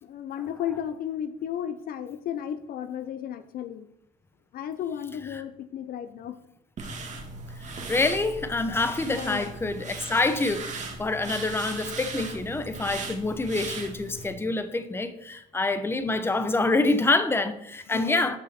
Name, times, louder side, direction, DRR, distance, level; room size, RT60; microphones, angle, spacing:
voice 1, 0.0-3.9 4.5-6.4 9.0-9.5 12.5-13.1 17.9-18.4, left 9 dB, 60° left, 0.7 m, -34 dB
sound 1, 6.8-14.3, right 3 dB, 45° right, 2.0 m, -38 dB
voice 2, 7.6-18.4, left 2 dB, 15° left, 0.9 m, -26 dB
12.5 x 5.7 x 4.3 m
cardioid pair, 110°, 17 cm